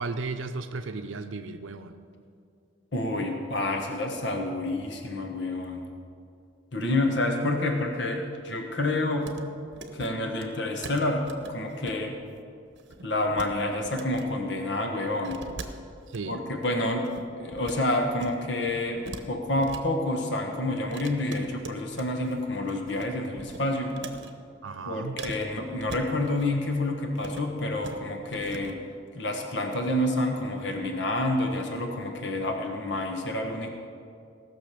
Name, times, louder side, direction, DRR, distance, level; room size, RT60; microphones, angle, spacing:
voice 1, 0.0-2.0 16.1-16.4 24.6-25.2, right 3 dB, 75° right, 7 dB, 0.6 m, -34 dB
voice 2, 2.9-5.9 6.7-9.3 9.9-12.2 13.0-15.5 16.3-17.1 17.4-24.0 24.8-28.8 29.1-33.8, left 1 dB, 60° left, 3 dB, 1.3 m, -28 dB
sound 1, 9.2-9.4 9.7-10.1 10.4-10.5 10.8-11.9 12.2-12.4 12.7-13.5 13.8-14.3 15.2-16.2 16.7-17.8 18.1-18.4 18.7-19.8 20.9-22.4 22.7-23.1 23.4-24.3 25.2-26.5 27.1-27.4 27.7-28.0 28.3-28.7, right 3 dB, 60° right, 0.9 m, -42 dB
18.0 x 6.3 x 6.7 m, 2.3 s
head